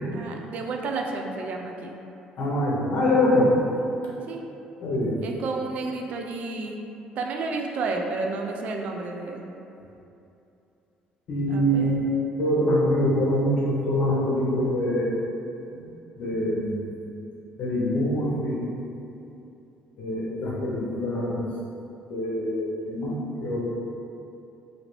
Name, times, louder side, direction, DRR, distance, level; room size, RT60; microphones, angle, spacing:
voice 1, 0.1-2.0 4.3-4.4 5.2-6.9 7.2-9.5 11.5-12.4, right 3 dB, 60° right, 2 dB, 0.3 m, -31 dB
voice 2, 2.4-3.5 4.8-5.2 11.3-12.0 12.4-15.1 16.2-16.7 17.6-18.6 20.0-21.4 22.1-23.6, equal, 65° left, -4 dB, 0.8 m, -24 dB
2.8 x 2.7 x 3.0 m, 2.8 s
supercardioid pair, 90°, 3 cm